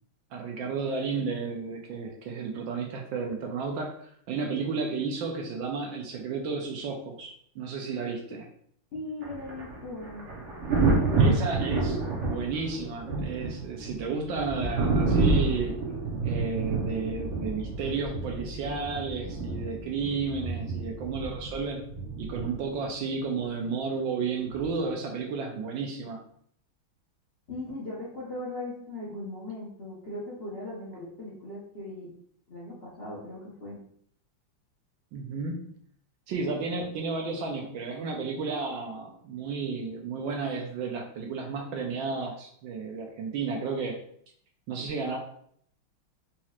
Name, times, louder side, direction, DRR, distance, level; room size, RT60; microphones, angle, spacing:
voice 1, 0.3-3.9 4.3-8.5 11.2-15.8 16.2-21.8 22.2-26.2 35.1-35.7 36.3-43.9 44.7-45.2, right 4 dB, 75° right, 1 dB, 1.2 m, -32 dB
voice 2, 8.9-10.3 27.5-32.1 32.5-33.8, left 2 dB, 50° left, -7 dB, 0.7 m, -39 dB
Thunder, 9.2-22.9 24.5-24.7, right 3 dB, 60° right, 0.8 m, -29 dB
4.2 x 2.9 x 2.4 m, 0.64 s
omnidirectional pair, 2.3 m